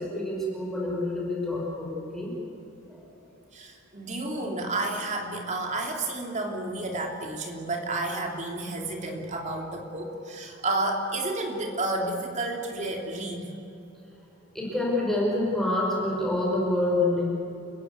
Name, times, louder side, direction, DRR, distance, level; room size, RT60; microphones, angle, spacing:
voice 1, 0.0-2.3 2.9-3.0 14.5-17.2, left 1 dB, ahead, -3 dB, 5.7 m, -27 dB
voice 2, 3.5-13.5, right 2 dB, 35° right, 1 dB, 3.5 m, -31 dB
30.0 x 17.0 x 8.4 m, 2.8 s
head